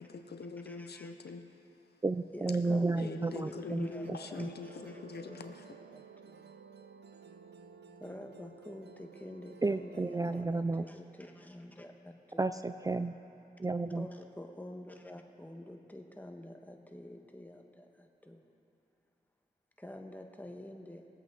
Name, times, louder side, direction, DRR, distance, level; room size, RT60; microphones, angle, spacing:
voice 1, 0.0-1.5 3.0-5.7, left 4 dB, 75° left, 8 dB, 0.7 m, -43 dB
voice 2, 0.6-1.1 2.3-6.6 8.0-12.5 13.9-18.5 19.8-21.1, left 1 dB, 10° left, 3 dB, 1.3 m, -48 dB
voice 3, 2.0-4.5 9.6-10.8 12.4-13.1 13.6-14.1, right 3 dB, 20° right, 10 dB, 0.4 m, -32 dB
Musical instrument, 4.0-10.4, right 6 dB, 80° right, 0.6 m, -54 dB
21.0 x 8.1 x 4.0 m, 2.8 s
cardioid pair, 45°, 17 cm